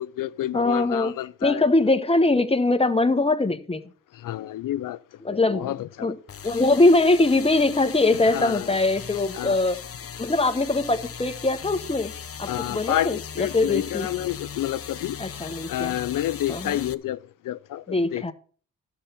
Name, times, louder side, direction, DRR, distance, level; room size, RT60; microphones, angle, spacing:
voice 1, 0.0-1.7 4.1-5.0 5.3-6.1 8.2-8.8 9.3-9.6 12.5-18.3, left 13 dB, 75° left, 0.5 m, -29 dB
voice 2, 0.5-1.1 1.4-3.8 5.2-5.7 6.0-6.1 6.4-9.8 10.2-12.1 12.4-14.1 15.2-15.9 16.5-16.8 17.9-18.3, left 2 dB, 15° left, 1.3 m, -22 dB
sound 1, 6.3-16.9, left 7 dB, 45° left, 0.8 m, -38 dB
11.0 x 7.0 x 5.6 m
cardioid pair, 60°, 33 cm